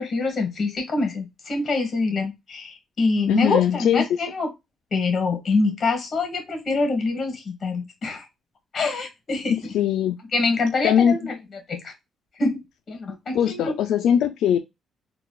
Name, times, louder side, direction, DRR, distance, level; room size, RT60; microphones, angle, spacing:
voice 1, 0.0-4.5 4.9-8.2 8.7-9.7 10.3-11.3 11.7-11.9 12.4-12.6 12.9-13.7, left 3 dB, 40° left, 1.3 m, -25 dB
voice 2, 3.3-4.0 9.5-10.2 10.8-11.2 13.3-14.6, left 9 dB, 80° left, 0.4 m, -21 dB
3.9 x 2.4 x 2.3 m
cardioid pair, 125°, 0 cm